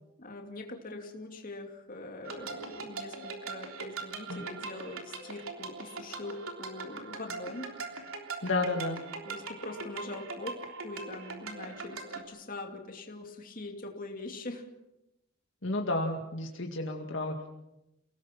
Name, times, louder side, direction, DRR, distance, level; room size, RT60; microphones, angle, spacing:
voice 1, 0.2-7.7 9.2-14.7, left 2 dB, 40° left, 3 dB, 2.7 m, -42 dB
sound 1, 2.2-12.2, right 4 dB, 70° right, 3.5 m, -41 dB
voice 2, 8.4-9.0 15.6-17.4, left 2 dB, 55° left, 2 dB, 2.1 m, -31 dB
29.5 x 18.5 x 6.0 m, 0.89 s
head